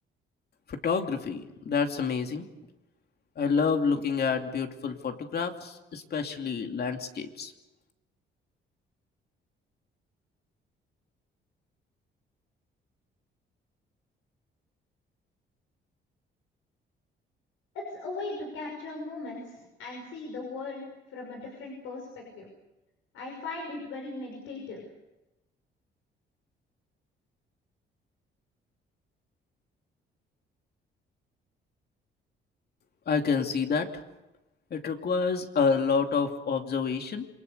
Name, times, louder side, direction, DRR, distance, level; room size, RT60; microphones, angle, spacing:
voice 1, 0.7-2.5 3.4-7.5 33.1-33.9 34.7-37.3, left 5 dB, 55° left, 5 dB, 2.7 m, -28 dB
voice 2, 17.7-22.5 23.1-24.9, left 3 dB, 90° left, 0 dB, 5.9 m, -38 dB
28.0 x 23.0 x 6.8 m, 1.0 s
cardioid pair, 90°, 20 cm